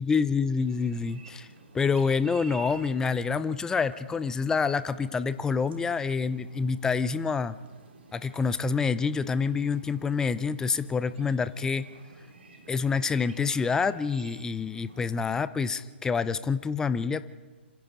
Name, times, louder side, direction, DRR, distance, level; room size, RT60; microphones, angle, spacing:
voice 1, 0.0-1.5 1.7-7.6 8.1-11.9 12.7-17.2, left 5 dB, 10° left, 13 dB, 0.7 m, -27 dB
sound 1, 0.6-15.4, right 4 dB, 65° right, 3.2 m, -51 dB
27.0 x 26.0 x 4.0 m, 1.3 s
figure-of-eight pair, 125°, 6 cm